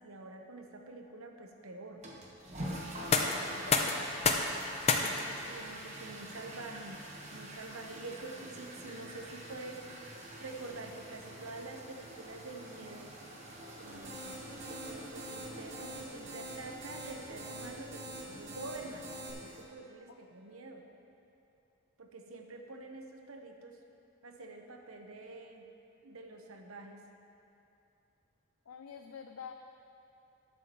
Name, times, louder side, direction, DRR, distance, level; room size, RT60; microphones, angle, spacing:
voice 1, 0.0-2.1 4.8-7.0 7.3-10.0 10.4-13.2 13.8-20.9 22.0-23.8 24.2-25.7 26.0-27.1, right 2 dB, 80° right, 3 dB, 1.0 m, -47 dB
sound 1, 2.0-19.6, right 1 dB, 30° right, 1.2 m, -47 dB
voice 2, 2.9-4.1 20.1-20.2 28.7-29.5, left 6 dB, 80° left, 5 dB, 0.5 m, -48 dB
sound 2, 2.9-14.7, left 4 dB, 30° left, 0.6 m, -37 dB
sound 3, 13.8-19.3, right 1 dB, 55° right, 2.3 m, -45 dB
19.5 x 7.1 x 3.1 m, 2.7 s
head